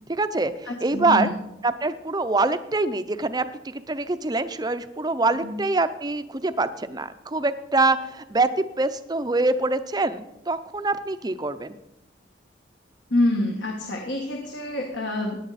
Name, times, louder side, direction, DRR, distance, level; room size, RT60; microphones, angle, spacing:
voice 1, 0.1-1.3 1.6-11.7, right 3 dB, 20° right, 11 dB, 0.6 m, -25 dB
voice 2, 0.7-1.3 5.3-5.6 13.1-15.4, left 1 dB, 70° left, 1 dB, 1.6 m, -26 dB
17.0 x 9.9 x 4.2 m, 0.90 s
head